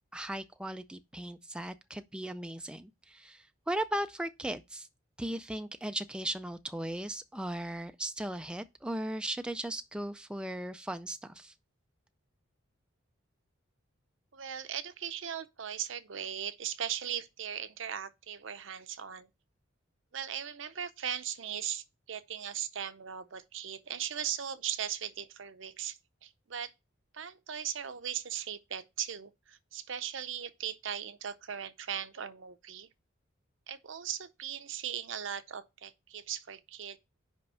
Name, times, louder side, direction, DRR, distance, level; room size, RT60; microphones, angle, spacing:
voice 1, 0.1-4.9 5.2-11.5, right 1 dB, 5° right, 0.3 m, -37 dB
voice 2, 14.3-19.3 20.1-26.7 27.1-32.9 33.7-37.0, right 9 dB, 70° right, 0.7 m, -38 dB
5.4 x 5.2 x 5.5 m
head